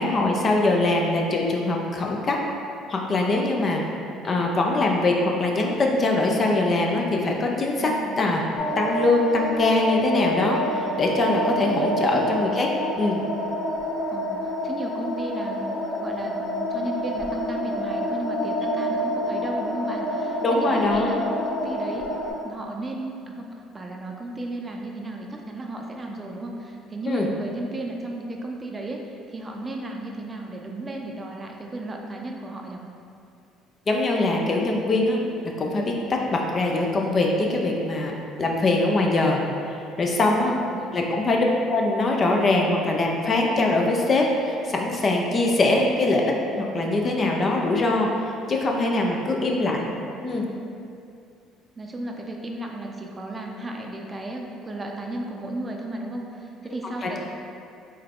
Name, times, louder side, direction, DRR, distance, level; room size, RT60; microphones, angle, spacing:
voice 1, 0.0-2.4 2.9-3.8 4.2-7.9 8.2-8.4 8.8-12.7 13.0-13.2 20.4-21.2 27.1-27.3 33.9-35.2 35.6-38.1 38.4-39.4 39.7-40.5 40.9-46.3 46.6-49.9 50.2-50.5 57.0-57.2, left 2 dB, 40° left, 0 dB, 0.6 m, -22 dB
voice 2, 7.8-8.2 11.6-12.3 14.1-21.2 21.5-22.1 22.4-32.8 40.2-40.9 49.2-49.5 51.8-57.2, right 1 dB, 25° right, 1 dB, 0.6 m, -34 dB
sound 1, 8.6-22.3, equal, 75° left, 1.0 m, -28 dB
4.6 x 3.2 x 3.6 m, 2.5 s
supercardioid pair, 85°, 0 cm